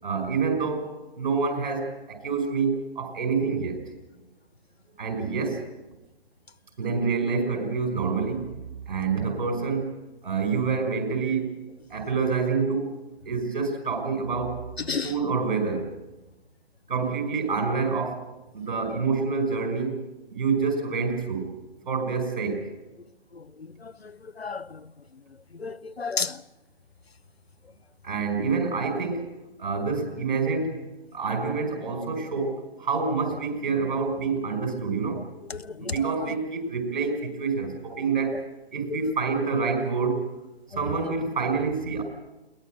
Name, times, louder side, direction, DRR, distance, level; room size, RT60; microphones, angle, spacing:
voice 1, 0.0-3.8 5.0-5.6 6.8-8.6 8.8-9.9 10.2-11.5 11.9-12.9 13.3-14.6 15.0-15.9 16.9-18.2 18.5-20.0 20.3-21.5 21.9-22.7 28.0-29.3 29.6-30.8 31.1-35.2 35.8-38.4 38.7-40.2 40.8-42.0, right 4 dB, 55° right, 5.5 m, -27 dB
voice 2, 14.8-15.1 23.3-24.9 25.5-26.4 35.5-35.9 36.3-36.4 38.9-39.1 40.7-40.8, left 4 dB, 80° left, 0.9 m, -33 dB
22.0 x 19.5 x 7.8 m
figure-of-eight pair, 135°, 31 cm